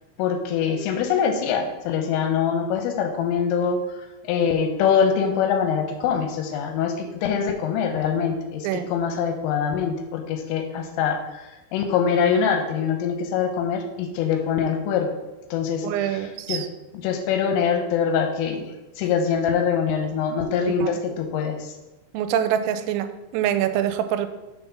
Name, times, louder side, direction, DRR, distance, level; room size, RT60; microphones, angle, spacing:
voice 1, 0.2-15.1 15.5-16.6 17.0-21.7, left 7 dB, 85° left, 5 dB, 3.2 m, -24 dB
voice 2, 15.8-16.7 20.8-20.9 22.1-24.3, right 10 dB, 85° right, 10 dB, 3.1 m, -25 dB
6.9 x 4.5 x 5.7 m, 1.0 s
omnidirectional pair, 5.9 m